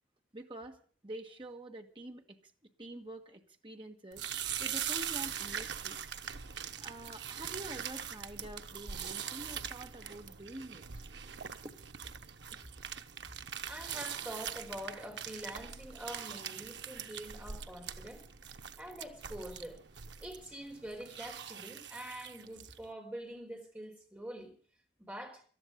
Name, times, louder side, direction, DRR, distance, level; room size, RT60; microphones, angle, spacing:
voice 1, 0.3-0.8 1.0-2.4 2.8-4.2 4.6-6.0 6.8-11.1 11.6-11.8 12.5-12.6, right 1 dB, 30° right, 1.5 m, -47 dB
sound 1, 4.1-22.8, right 8 dB, 90° right, 0.9 m, -42 dB
voice 2, 13.7-18.2 18.8-19.8 20.2-24.5 25.0-25.4, right 1 dB, 10° right, 4.1 m, -45 dB
19.0 x 13.0 x 5.2 m
head